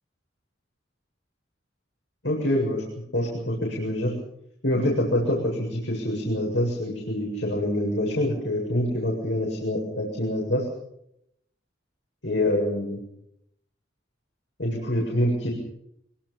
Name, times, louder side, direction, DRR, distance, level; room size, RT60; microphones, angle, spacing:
voice 1, 2.2-2.8 3.1-4.1 4.6-10.7 12.2-13.0 14.6-15.5, left 1 dB, 85° left, -1 dB, 7.8 m, -25 dB
25.0 x 25.0 x 5.8 m, 0.75 s
head